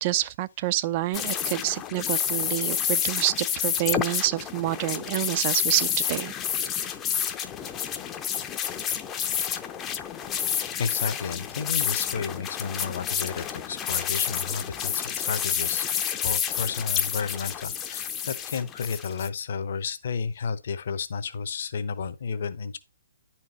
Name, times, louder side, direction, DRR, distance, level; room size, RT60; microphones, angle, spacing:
voice 1, 0.0-6.3, right 15 dB, 30° right, 0.4 m, -27 dB
sound 1, 1.1-19.3, left 9 dB, 20° left, 0.6 m, -29 dB
voice 2, 10.8-15.9 16.2-22.8, left 5 dB, 50° left, 0.9 m, -32 dB
11.0 x 4.5 x 4.1 m
figure-of-eight pair, 125°, 0 cm